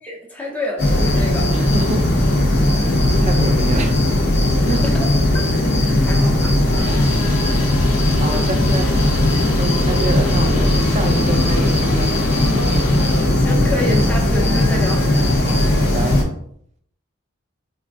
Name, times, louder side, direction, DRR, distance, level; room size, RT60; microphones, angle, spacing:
voice 1, 0.0-1.5 4.6-5.1 5.3-6.6 13.3-15.1, left 1 dB, 10° left, 0.7 m, -28 dB
sound 1, 0.8-16.2, left 1 dB, 55° left, 0.8 m, -17 dB
voice 2, 1.5-2.1 2.6-4.0 4.7-4.8 8.2-8.9 9.3-12.1 15.4-16.2, right 2 dB, 35° right, 0.5 m, -27 dB
sound 2, 6.7-13.4, left 3 dB, 85° left, 1.0 m, -35 dB
4.2 x 2.4 x 2.5 m
head